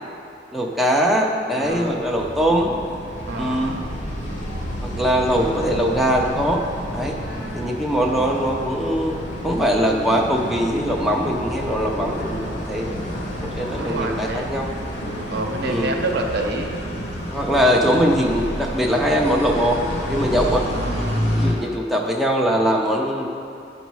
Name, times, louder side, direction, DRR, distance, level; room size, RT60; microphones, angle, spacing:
voice 1, 0.5-2.7 3.4-3.8 4.8-6.6 6.9-7.2 7.5-9.2 9.4-13.0 13.4-14.7 15.6-15.9 17.3-19.8 20.1-20.7 21.3-23.3, equal, ahead, -2 dB, 0.5 m, -21 dB
voice 2, 1.5-2.0 3.3-3.8 7.3-7.7 13.8-14.6 15.3-16.7 20.7-21.3, right 2 dB, 65° right, 2 dB, 0.8 m, -28 dB
sound 1, 1.6-20.6, equal, 45° left, 1.2 m, -37 dB
sound 2, 2.1-21.5, equal, 60° left, 1.4 m, -30 dB
10.5 x 4.1 x 4.7 m, 2.6 s
head